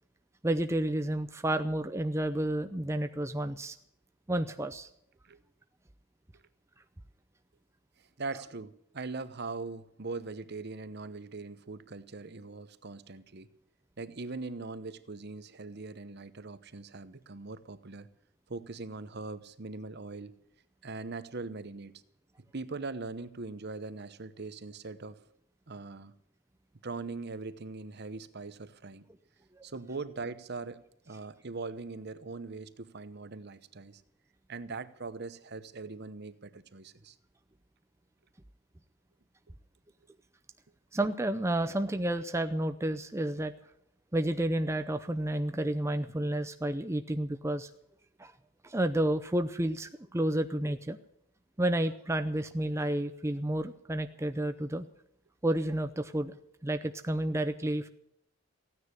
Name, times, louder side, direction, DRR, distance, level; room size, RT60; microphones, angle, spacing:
voice 1, 0.4-3.8 4.3-4.9 40.9-43.5 44.1-47.7 48.2-48.3 48.6-51.0 51.6-54.9 55.4-56.4 56.6-57.9, right 1 dB, 15° right, 8 dB, 0.6 m, -30 dB
voice 2, 8.2-13.5 14.0-18.1 18.5-20.4 20.8-21.9 22.5-25.2 25.7-26.1 26.8-29.0 29.6-30.8 31.1-34.0 34.5-37.2, right 3 dB, 50° right, 14 dB, 0.9 m, -41 dB
15.5 x 9.7 x 9.7 m, 0.72 s
head